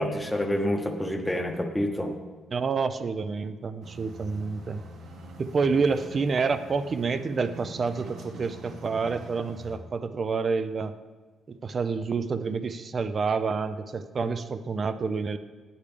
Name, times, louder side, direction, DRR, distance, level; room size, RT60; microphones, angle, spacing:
voice 1, 0.0-2.2, left 1 dB, 5° left, 4 dB, 0.9 m, -28 dB
voice 2, 2.5-4.8 5.4-10.9 11.5-15.4, right 5 dB, 40° right, 11 dB, 0.5 m, -28 dB
sound 1, 3.8-9.8, right 2 dB, 70° right, 0.9 m, -44 dB
8.7 x 8.6 x 3.3 m, 1.4 s
cardioid pair, 90°, 0 cm